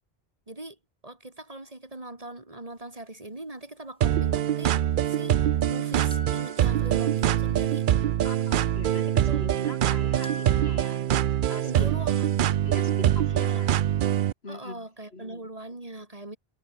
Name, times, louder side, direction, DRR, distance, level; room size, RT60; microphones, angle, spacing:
voice 1, 0.5-0.8 1.0-7.9 9.0-10.0 11.6-12.3 13.3-13.6 14.5-16.4, right 2 dB, 35° right, 2.6 m, -41 dB
sound 1, 4.0-14.3, right 11 dB, 60° right, 0.6 m, -24 dB
sound 2, 4.4-4.5 5.6-5.7 6.1-7.5 9.6-9.7 10.2-11.1, equal, 5° left, 3.0 m, -46 dB
voice 2, 8.2-11.1 11.5-12.1 12.4-13.8 14.4-15.5, left 2 dB, 75° left, 3.8 m, -42 dB
omnidirectional pair, 1.1 m